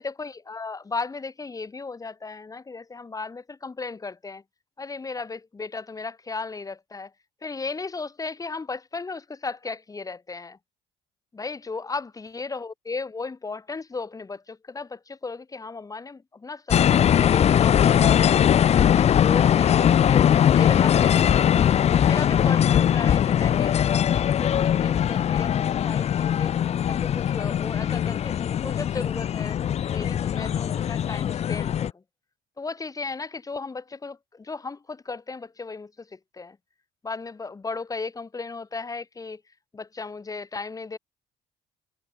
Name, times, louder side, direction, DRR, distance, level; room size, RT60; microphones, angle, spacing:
voice 1, 0.0-4.4 4.8-7.1 7.4-10.6 11.3-18.4 18.8-21.6 22.0-26.5 26.9-29.6 29.9-32.0 32.6-36.6 37.0-39.4 39.7-41.0, left 4 dB, 20° left, 1.5 m, -35 dB
sound 1, 16.7-31.9, left 9 dB, 40° left, 0.5 m, -21 dB
cardioid pair, 110°, 17 cm